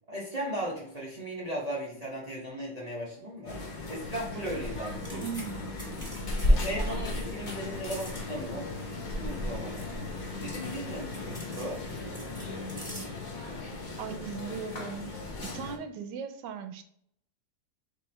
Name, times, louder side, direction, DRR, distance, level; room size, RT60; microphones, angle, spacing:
voice 1, 0.1-3.6 3.9-5.2 6.5-8.7 9.1-11.8, right 1 dB, 35° right, -5 dB, 0.7 m, -37 dB
sound 1, 3.4-15.8, left 1 dB, 70° left, 0.4 m, -34 dB
sound 2, 4.8-13.1, equal, 5° left, 1.3 m, -44 dB
voice 2, 5.2-5.6 13.6-13.7 14.0-15.1 15.5-16.8, right 6 dB, 90° right, 8 dB, 1.2 m, -38 dB
4.3 x 3.4 x 3.2 m, 0.67 s
omnidirectional pair, 1.8 m